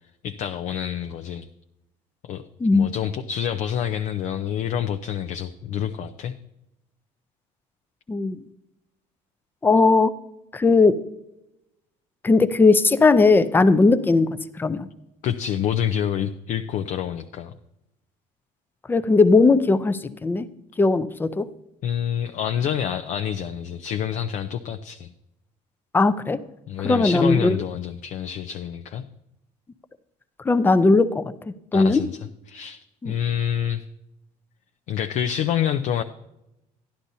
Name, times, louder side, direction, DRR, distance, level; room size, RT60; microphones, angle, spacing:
voice 1, 0.2-1.5 2.2-2.4 2.7-6.3 15.2-17.5 21.8-25.1 26.7-29.0 31.7-33.9 34.9-36.0, left 9 dB, 60° left, 7 dB, 0.5 m, -27 dB
voice 2, 8.1-8.4 9.6-10.1 10.5-11.0 12.2-14.3 14.6-14.9 18.9-20.5 20.8-21.5 25.9-26.4 26.8-27.6 30.4-31.2 31.7-32.0 33.0-33.1, left 3 dB, 15° left, 13 dB, 0.5 m, -18 dB
11.5 x 11.5 x 2.7 m, 0.88 s
cardioid pair, 130°, 14 cm